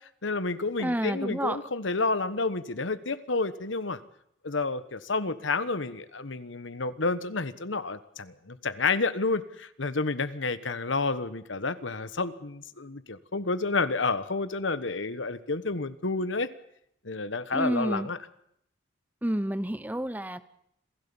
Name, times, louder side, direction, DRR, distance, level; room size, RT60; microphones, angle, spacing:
voice 1, 0.2-4.0 4.4-16.5 17.0-18.2, left 3 dB, 75° left, 13 dB, 1.3 m, -30 dB
voice 2, 0.8-1.6 17.5-18.1 19.2-20.4, right 1 dB, 10° right, 14 dB, 0.8 m, -29 dB
27.0 x 16.5 x 7.1 m, 0.74 s
head